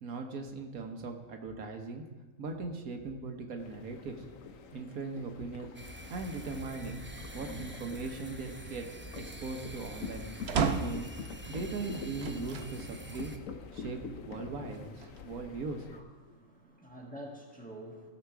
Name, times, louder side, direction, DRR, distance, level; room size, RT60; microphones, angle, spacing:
voice 1, 0.0-2.0 2.4-4.1 4.7-5.7 6.1-7.0 7.3-8.9 9.1-10.2 10.6-13.3 13.7-15.8, right 4 dB, 80° right, 4 dB, 1.5 m, -39 dB
sound 1, 3.6-16.0, left 6 dB, 70° left, 1.2 m, -46 dB
sound 2, 5.7-13.4, right 1 dB, 15° right, 0.4 m, -47 dB
sound 3, 10.5-11.1 12.2-12.7 13.4-13.5 14.7-15.5, right 6 dB, 55° right, 0.9 m, -33 dB
voice 2, 15.9-18.1, right 1 dB, 5° left, -2 dB, 1.6 m, -47 dB
16.5 x 6.6 x 4.6 m, 1.3 s
omnidirectional pair, 1.5 m